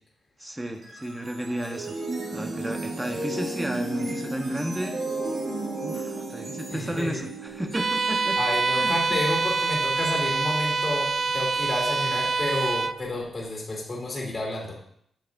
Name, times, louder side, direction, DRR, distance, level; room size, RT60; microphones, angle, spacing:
voice 1, 0.4-2.0 2.3-5.0 5.8-8.4 8.8-9.2, right 1 dB, 10° right, 5 dB, 1.1 m, -33 dB
sound 1, 0.6-9.8, right 2 dB, 70° right, 3.0 m, -34 dB
voice 2, 6.7-7.2 8.4-14.8, left 2 dB, 40° left, -4 dB, 2.4 m, -30 dB
Bowed string instrument, 7.7-13.0, right 4 dB, 40° right, 0.3 m, -25 dB
8.8 x 6.7 x 2.6 m, 0.67 s
cardioid pair, 75°, 0 cm